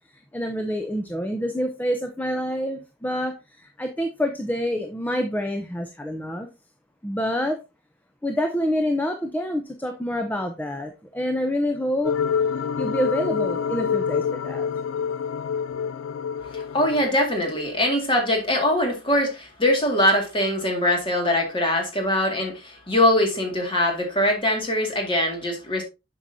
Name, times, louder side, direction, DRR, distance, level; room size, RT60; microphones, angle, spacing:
voice 1, 0.1-6.5 7.0-7.6 8.2-12.1 12.8-14.7, equal, 10° left, 0.6 m, -27 dB
sound 1, 12.0-17.1, left 7 dB, 80° left, 0.3 m, -26 dB
voice 2, 16.5-25.8, left 1 dB, 25° left, 2.0 m, -22 dB
7.8 x 6.1 x 2.7 m
head